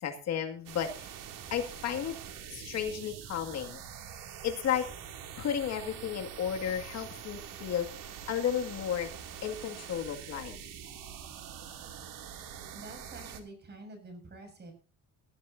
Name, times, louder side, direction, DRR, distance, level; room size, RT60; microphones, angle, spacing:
voice 1, 0.0-1.1 1.5-2.2 2.5-3.8 4.4-4.9 5.4-7.9 8.3-9.1 9.4-10.6, left 9 dB, 55° left, 5 dB, 2.2 m, -33 dB
sound 1, 0.7-13.4, right 8 dB, 80° right, 2.7 m, -45 dB
voice 2, 12.7-14.7, right 2 dB, 30° right, 5 dB, 6.6 m, -47 dB
20.5 x 12.5 x 2.7 m, 0.38 s
cardioid pair, 150°, 32 cm